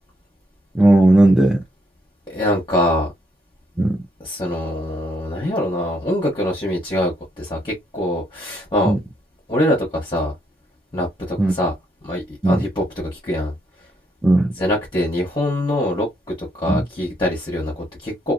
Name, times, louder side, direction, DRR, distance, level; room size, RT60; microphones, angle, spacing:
voice 1, 0.7-1.6 3.8-4.0 8.9-9.0 11.4-11.5 12.4-12.6 14.2-14.5 16.7-16.8, right 2 dB, 5° right, 0.4 m, -15 dB
voice 2, 2.3-3.1 4.2-8.9 9.5-10.3 10.9-11.7 12.0-13.5 14.6-16.1 16.4-18.3, left 1 dB, 25° left, 1.0 m, -23 dB
2.8 x 2.5 x 2.5 m
head